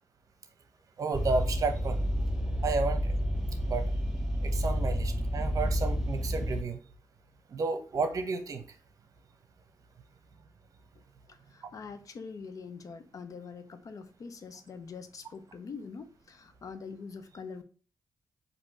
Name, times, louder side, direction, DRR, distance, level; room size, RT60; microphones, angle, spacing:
voice 1, 1.0-2.0 2.6-3.1 3.7-3.9 4.4-6.8 7.5-8.6, right 4 dB, 55° right, 0.9 m, -32 dB
sound 1, 1.1-6.6, equal, 10° right, 0.9 m, -30 dB
voice 2, 11.5-17.6, left 5 dB, 60° left, 0.7 m, -44 dB
4.4 x 2.8 x 4.2 m
cardioid pair, 65°, 7 cm